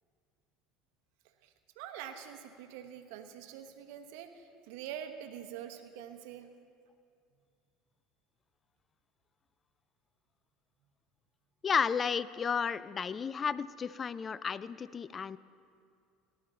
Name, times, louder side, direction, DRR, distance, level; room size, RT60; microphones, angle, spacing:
voice 1, 1.4-6.5, right 9 dB, 70° right, 7 dB, 1.0 m, -45 dB
voice 2, 11.6-15.4, left 6 dB, 30° left, 18 dB, 0.3 m, -32 dB
18.0 x 11.5 x 4.0 m, 2.4 s
hypercardioid pair, 85°, 0 cm